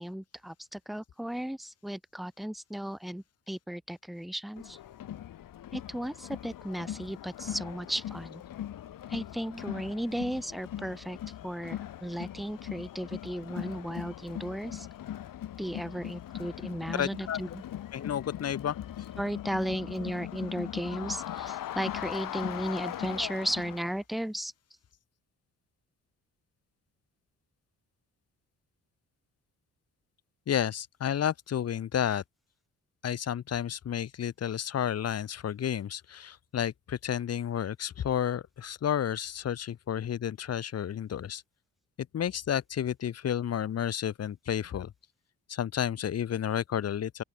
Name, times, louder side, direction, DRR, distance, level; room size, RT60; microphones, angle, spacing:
voice 1, 0.0-4.8 5.7-8.4 9.1-11.2 11.4-14.9 15.6-17.6 19.2-24.5, equal, ahead, 0.6 m, -35 dB
Crowd, 4.6-24.0, left 12 dB, 80° left, 2.1 m, -40 dB
voice 2, 16.9-17.6 17.9-19.1 30.5-32.2 33.0-41.4 42.0-44.9 45.5-47.2, left 9 dB, 50° left, 1.0 m, -31 dB
open air
wide cardioid pair, 140°, 33 cm